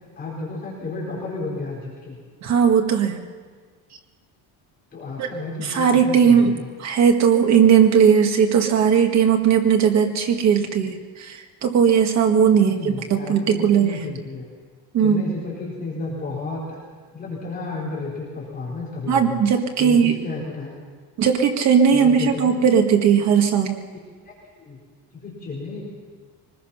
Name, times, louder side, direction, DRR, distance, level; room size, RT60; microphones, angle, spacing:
voice 1, 0.2-2.2 4.9-6.7 12.5-14.4 15.0-16.8 17.1-19.4 19.8-20.7 21.9-22.6 24.2-24.8 25.1-25.8, left 3 dB, 25° left, -5 dB, 4.4 m, -32 dB
voice 2, 2.4-3.2 5.2-5.3 5.6-14.0 14.9-15.3 19.1-20.2 21.2-23.8, right 7 dB, 45° right, 4 dB, 1.8 m, -18 dB
23.5 x 20.0 x 5.7 m, 1.5 s
cardioid pair, 180°, 40 cm